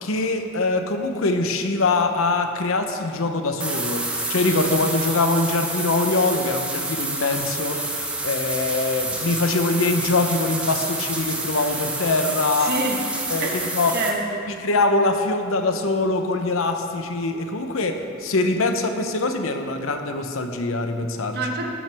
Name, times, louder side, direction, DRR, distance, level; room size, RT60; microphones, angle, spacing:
voice 1, 0.0-12.8 13.3-13.5 13.7-14.0 14.6-21.4, left 3 dB, 85° left, 6 dB, 0.8 m, -23 dB
sound 1, 3.6-14.1, right 2 dB, 5° right, 0.7 m, -28 dB
voice 2, 12.6-13.0 13.4-14.5 21.3-21.7, right 2 dB, 50° right, 0 dB, 1.1 m, -27 dB
13.0 x 8.7 x 3.4 m, 2.5 s
head